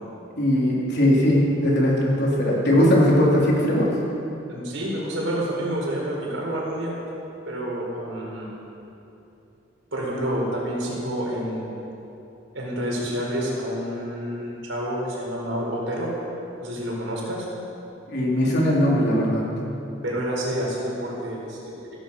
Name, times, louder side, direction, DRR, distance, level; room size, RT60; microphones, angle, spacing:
voice 1, 0.4-3.9 18.1-19.5, equal, 60° left, -4 dB, 3.8 m, -19 dB
voice 2, 4.5-7.0 7.4-8.5 9.9-11.7 12.5-16.1 16.6-17.5 20.0-21.8, right 1 dB, 85° right, -3 dB, 4.8 m, -28 dB
16.0 x 14.5 x 5.6 m, 2.9 s
head